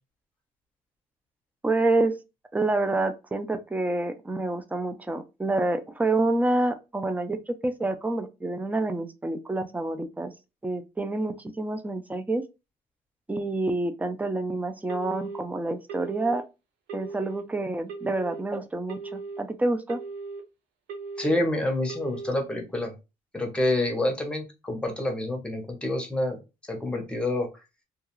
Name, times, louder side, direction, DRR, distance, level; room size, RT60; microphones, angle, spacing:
voice 1, 1.6-2.1 2.5-10.3 10.6-12.4 13.3-16.4 16.9-20.0, right 2 dB, 10° right, 0.3 m, -28 dB
Telephone, 14.9-15.4 15.9-16.4 16.9-17.4 17.9-18.4 18.9-19.4 19.9-20.4 20.9-21.4 21.9-22.4, right 4 dB, 70° right, 0.8 m, -37 dB
voice 2, 21.2-22.9 23.3-26.4 26.7-27.5, left 1 dB, 5° left, 0.8 m, -27 dB
2.3 x 2.3 x 2.9 m
cardioid pair, 110°, 17 cm